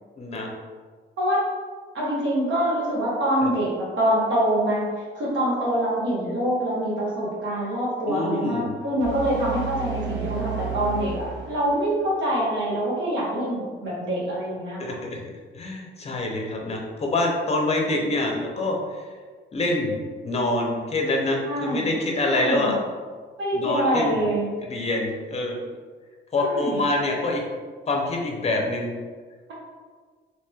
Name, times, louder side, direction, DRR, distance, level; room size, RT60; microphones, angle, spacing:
voice 1, 0.2-0.5 3.4-3.5 8.1-8.7 14.8-15.2 15.5-19.0 19.5-19.9 20.2-22.8 23.5-24.2 24.6-25.6 26.3-27.4 27.9-28.9, left 2 dB, 30° left, 0 dB, 0.6 m, -25 dB
voice 2, 1.2-1.5 1.9-4.9 5.1-14.9 21.5-21.9 22.2-22.8 23.4-24.5 26.4-26.8, right 1 dB, 70° right, -6 dB, 1.1 m, -25 dB
sound 1, 9.0-12.1, right 6 dB, 85° right, 0.5 m, -32 dB
2.9 x 2.9 x 2.3 m, 1.5 s
cardioid pair, 90°, 20 cm